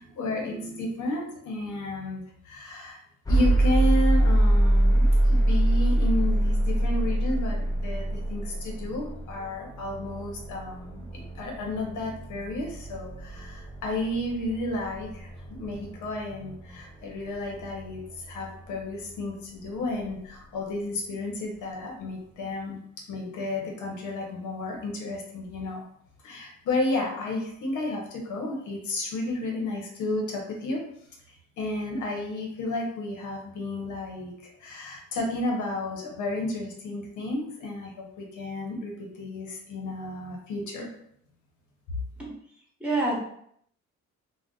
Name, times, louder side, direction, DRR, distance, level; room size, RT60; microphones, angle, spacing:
voice 1, 0.0-3.0 3.3-22.8 23.1-25.8 26.2-30.8 31.3-40.9, left 2 dB, 75° left, 0 dB, 0.9 m, -32 dB
sound 1, 3.3-19.2, right 1 dB, 10° left, 0.5 m, -25 dB
voice 2, 42.2-43.2, right 2 dB, 5° right, -4 dB, 1.2 m, -29 dB
2.4 x 2.2 x 3.7 m, 0.68 s
cardioid pair, 90°, 30 cm